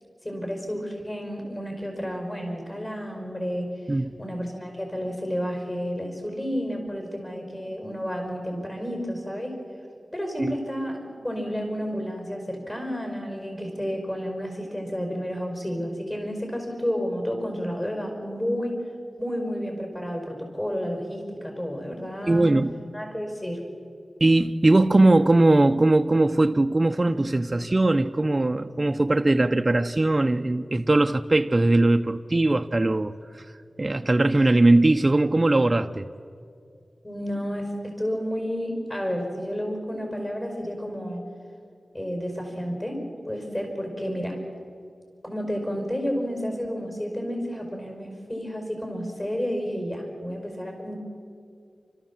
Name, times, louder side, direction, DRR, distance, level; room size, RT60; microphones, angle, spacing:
voice 1, 0.2-3.7 4.2-9.6 10.1-11.0 11.2-18.8 19.2-22.5 22.9-23.6 37.0-41.2 41.9-44.4 45.2-51.0, equal, 25° left, 5.2 m, -31 dB
voice 2, 22.3-22.8 24.2-33.4 33.8-36.1, right 2 dB, 35° right, 0.7 m, -20 dB
29.0 x 13.5 x 7.4 m
wide cardioid pair, 60°, 0 cm